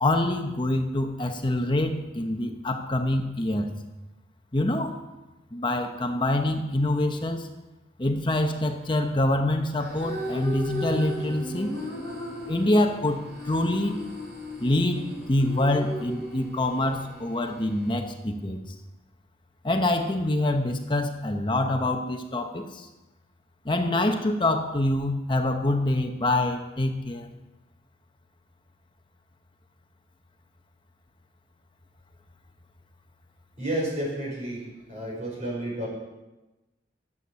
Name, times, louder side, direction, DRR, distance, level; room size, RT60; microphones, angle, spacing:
voice 1, 0.0-3.7 4.5-4.9 5.5-7.5 8.0-11.8 12.5-14.0 14.6-15.0 15.3-18.6 19.6-22.9 23.6-27.3, left 1 dB, 25° left, 5 dB, 0.8 m, -25 dB
sound 1, 9.8-18.0, left 1 dB, 60° right, 3.0 m, -36 dB
voice 2, 33.6-34.6 34.9-35.9, right 1 dB, 40° right, -3 dB, 5.0 m, -30 dB
12.5 x 7.9 x 6.9 m, 1.1 s
head